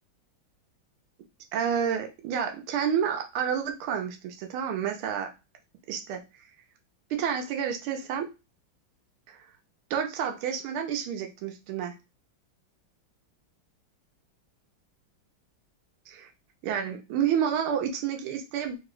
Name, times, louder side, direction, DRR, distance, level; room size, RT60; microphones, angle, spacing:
voice 1, 1.5-5.3 5.9-6.2 7.1-8.3 9.3-9.4 9.9-11.9 16.1-16.3 16.6-18.8, right 8 dB, 90° right, 4 dB, 1.5 m, -29 dB
4.8 x 2.6 x 3.1 m, 0.27 s
omnidirectional pair, 2.3 m